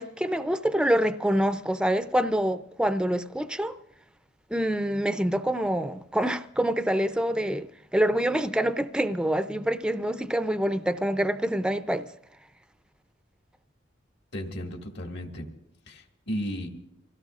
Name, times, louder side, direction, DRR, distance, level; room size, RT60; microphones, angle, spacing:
voice 1, 0.0-3.8 4.5-7.7 7.9-12.1, right 1 dB, 5° right, 0.5 m, -26 dB
voice 2, 14.3-15.5 15.9-16.7, equal, 60° left, 2.0 m, -34 dB
25.5 x 17.0 x 2.5 m
head